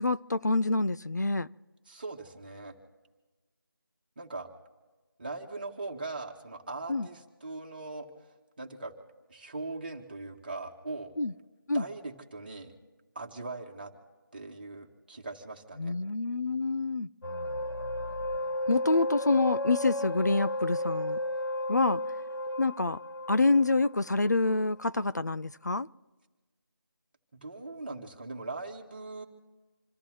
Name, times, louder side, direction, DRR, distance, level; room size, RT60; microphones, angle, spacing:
voice 1, 0.0-1.5 6.9-7.1 11.2-11.3 11.7-11.8 15.8-17.1 18.7-21.2 21.7-22.0 22.6-23.0 23.3-25.9, left 3 dB, 50° left, 0.4 m, -27 dB
voice 2, 1.9-2.7 4.1-4.5 5.2-8.1 8.6-8.9 9.3-11.1 11.7-12.7 13.1-13.9 14.3-15.9 27.3-29.2, right 3 dB, 25° right, 1.7 m, -40 dB
sound 1, 17.2-24.5, left 1 dB, 85° left, 0.8 m, -33 dB
27.5 x 14.0 x 3.1 m
figure-of-eight pair, 165°, 12 cm